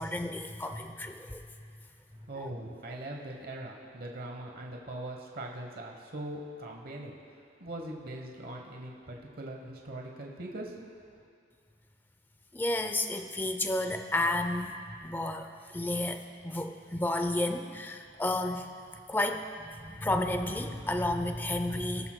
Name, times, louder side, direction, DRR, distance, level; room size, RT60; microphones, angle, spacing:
voice 1, 0.0-1.4 2.4-2.5 12.5-14.7 15.0-18.7 19.1-22.1, left 1 dB, 10° left, 7 dB, 0.5 m, -32 dB
voice 2, 2.3-11.3, right 1 dB, 50° right, 0 dB, 1.0 m, -41 dB
19.0 x 12.0 x 2.2 m, 2.2 s
head